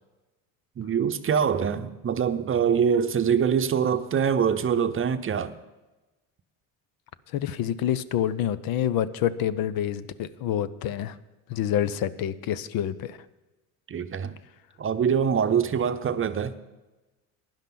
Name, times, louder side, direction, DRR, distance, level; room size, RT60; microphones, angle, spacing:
voice 1, 0.8-5.5 13.9-14.4 14.8-16.5, right 7 dB, 35° right, 0.7 m, -24 dB
voice 2, 7.3-11.2 11.5-13.2, left 10 dB, 65° left, 0.7 m, -27 dB
16.0 x 10.5 x 3.9 m
supercardioid pair, 90°, 37 cm